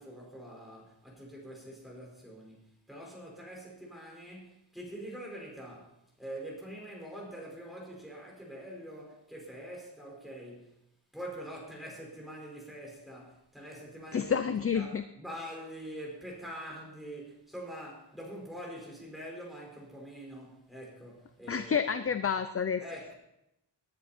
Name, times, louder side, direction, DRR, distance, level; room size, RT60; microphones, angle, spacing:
voice 1, 0.0-10.8 11.1-14.9 15.2-21.9 22.8-23.1, right 1 dB, ahead, -2 dB, 5.1 m, -45 dB
voice 2, 14.1-15.0 21.5-22.8, left 7 dB, 35° left, 10 dB, 0.5 m, -29 dB
20.0 x 10.5 x 4.4 m, 0.84 s
wide cardioid pair, 165°, 43 cm